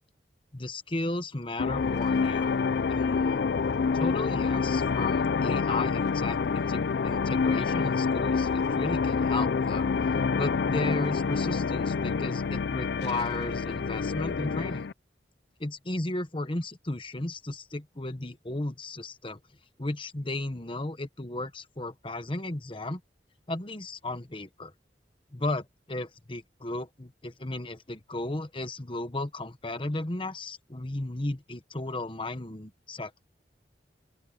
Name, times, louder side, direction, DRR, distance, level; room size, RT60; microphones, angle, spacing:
voice 1, 0.5-2.5 2.9-3.4 3.9-9.9 10.3-14.9 15.6-19.4 19.8-23.0 23.5-24.7 25.3-33.3, left 2 dB, 30° left, 1.2 m, -34 dB
sound 1, 1.6-14.9, left 5 dB, 70° left, 0.4 m, -27 dB
open air
head